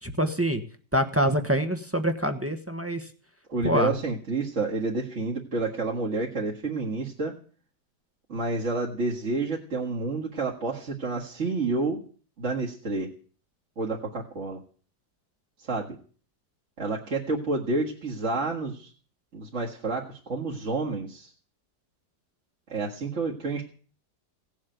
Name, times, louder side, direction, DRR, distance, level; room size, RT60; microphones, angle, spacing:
voice 1, 0.0-0.6 0.9-3.1 3.6-3.9, equal, 10° right, 6 dB, 1.0 m, -25 dB
voice 2, 3.5-7.4 8.3-12.0 12.4-13.1 13.8-14.6 15.6-16.0 16.8-18.9 19.3-21.3 22.7-23.6, right 3 dB, 45° right, -3 dB, 2.1 m, -29 dB
17.0 x 7.4 x 9.1 m, 0.43 s
omnidirectional pair, 1.7 m